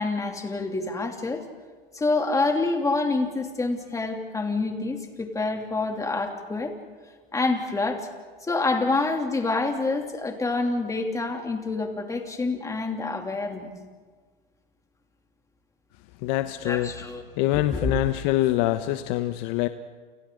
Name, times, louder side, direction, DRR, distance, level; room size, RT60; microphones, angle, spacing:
voice 1, 0.0-1.4 1.9-6.7 7.3-8.1 8.4-13.7 16.6-17.2 17.5-18.0, left 3 dB, 10° left, 3 dB, 3.0 m, -27 dB
voice 2, 16.2-16.9 17.4-19.7, left 15 dB, 50° left, 10 dB, 1.1 m, -24 dB
29.5 x 29.0 x 3.9 m, 1.5 s
hypercardioid pair, 115°, 29 cm